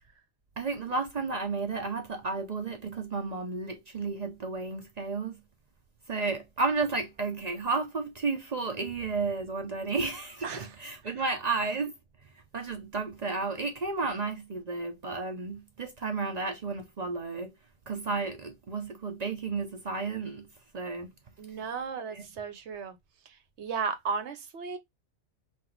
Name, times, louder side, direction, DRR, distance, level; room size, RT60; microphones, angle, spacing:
voice 1, 0.6-5.4 6.1-11.9 12.5-17.5 17.9-20.5 20.7-21.1 22.1-22.2, right 4 dB, 45° right, 0.6 m, -32 dB
voice 2, 10.4-10.7 21.4-23.0 23.3-24.8, right 5 dB, 70° right, 1.1 m, -35 dB
3.9 x 2.5 x 4.4 m
omnidirectional pair, 1.2 m